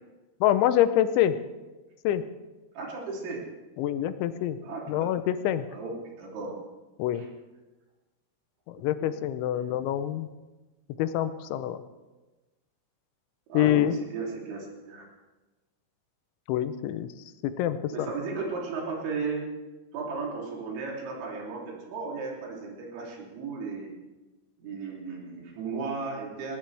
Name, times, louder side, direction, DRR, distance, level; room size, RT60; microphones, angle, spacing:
voice 1, 0.4-1.4 2.0-2.2 3.8-4.6 4.9-5.7 7.0-7.2 8.7-10.3 11.0-11.8 13.5-14.0 16.5-17.1 17.4-18.1, left 12 dB, 85° left, 12 dB, 3.1 m, -26 dB
voice 2, 2.8-3.5 4.6-5.1 5.7-6.6 7.1-7.3 9.0-9.1 13.5-15.1 17.9-19.5 19.9-23.9 24.6-26.6, right 4 dB, 75° right, -2 dB, 5.4 m, -35 dB
20.0 x 18.5 x 3.4 m, 1.1 s
omnidirectional pair, 5.4 m